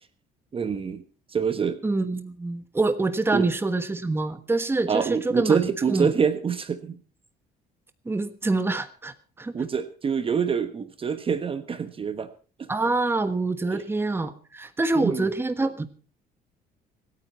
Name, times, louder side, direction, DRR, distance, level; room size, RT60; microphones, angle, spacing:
voice 1, 0.5-1.0 1.3-1.8 3.3-3.5 4.9-7.0 9.5-12.3 12.6-12.7 13.7-13.8 14.9-15.3, right 6 dB, 30° right, 11 dB, 1.2 m, -26 dB
voice 2, 1.8-6.1 8.0-9.5 12.7-15.9, right 3 dB, 15° right, 10 dB, 1.3 m, -26 dB
25.5 x 9.3 x 4.3 m, 0.38 s
cardioid pair, 110°, 17 cm